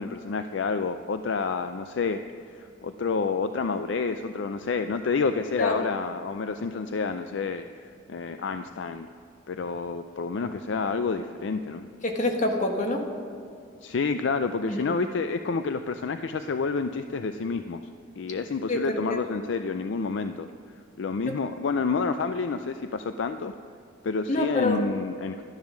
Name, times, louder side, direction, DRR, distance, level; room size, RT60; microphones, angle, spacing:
voice 1, 0.0-2.2 2.5-9.1 9.5-11.9 13.8-17.8 18.2-20.5 21.0-23.5 24.0-25.4, left 4 dB, 60° left, 9 dB, 0.4 m, -29 dB
voice 2, 12.0-13.0 14.7-14.8 18.7-19.0 21.3-21.4 24.3-24.8, left 1 dB, 40° left, 2 dB, 1.4 m, -26 dB
12.5 x 10.5 x 6.2 m, 2.5 s
head